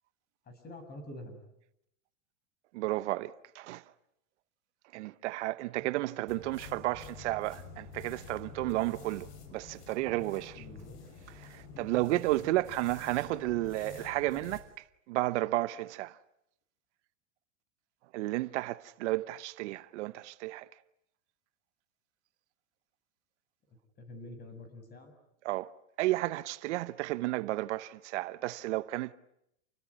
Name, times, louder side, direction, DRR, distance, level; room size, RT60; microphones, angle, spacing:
voice 1, 0.5-1.4 5.8-5.9 10.5-11.0 11.7-12.0 23.7-25.1, left 1 dB, 25° left, 6.9 m, -47 dB
voice 2, 2.7-3.8 4.9-10.6 11.3-16.2 18.1-20.7 25.4-25.7 26.0-29.1, right 18 dB, 65° right, 1.0 m, -32 dB
sound 1, 6.3-14.7, left 5 dB, 65° left, 6.3 m, -49 dB
29.5 x 19.5 x 9.7 m
supercardioid pair, 135°, 37 cm